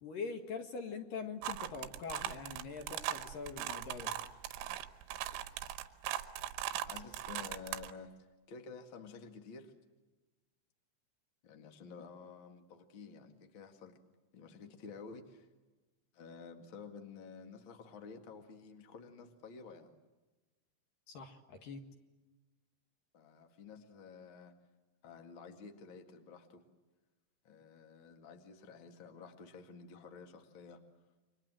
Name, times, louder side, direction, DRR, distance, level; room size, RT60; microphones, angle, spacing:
voice 1, 0.0-4.2 21.1-21.8, left 5 dB, 55° left, 6 dB, 2.7 m, -43 dB
sound 1, 1.4-7.9, right 12 dB, 85° right, 3.8 m, -39 dB
voice 2, 6.7-8.1 8.5-9.7 11.4-14.0 14.3-15.5 16.1-19.9 23.1-24.6 25.0-26.6 27.4-30.8, left 5 dB, 80° left, 5 dB, 1.1 m, -51 dB
30.0 x 25.0 x 7.7 m, 1.2 s
omnidirectional pair, 6.0 m